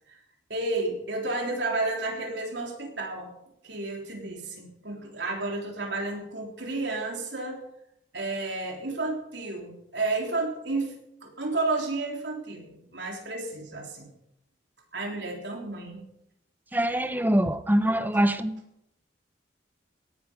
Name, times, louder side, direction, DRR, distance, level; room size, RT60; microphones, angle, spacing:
voice 1, 0.5-3.3 3.6-7.6 8.1-14.1 14.9-16.0, right 2 dB, 75° right, 1 dB, 3.6 m, -31 dB
voice 2, 16.7-18.6, right 1 dB, 10° right, 12 dB, 0.7 m, -24 dB
17.5 x 11.0 x 5.2 m, 0.78 s
head